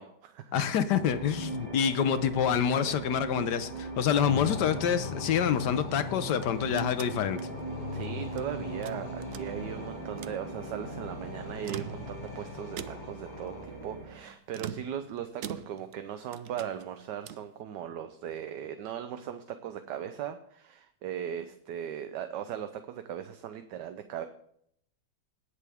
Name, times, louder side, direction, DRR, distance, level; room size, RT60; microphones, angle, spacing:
voice 1, 0.0-0.6 7.9-24.3, right 9 dB, 70° right, 9 dB, 1.3 m, -38 dB
voice 2, 0.5-7.4, left 8 dB, 70° left, 11 dB, 1.2 m, -27 dB
sound 1, 0.9-14.2, right 3 dB, 40° right, 4.9 m, -40 dB
sound 2, 4.1-14.0, left 6 dB, 50° left, 0.5 m, -41 dB
sound 3, 6.3-8.5 8.8-9.8 10.1-10.4 11.5-12.3 12.8-13.3 14.5-16.0 16.3-17.5, right 9 dB, 85° right, 0.7 m, -43 dB
18.5 x 6.8 x 3.5 m, 0.67 s
omnidirectional pair, 2.0 m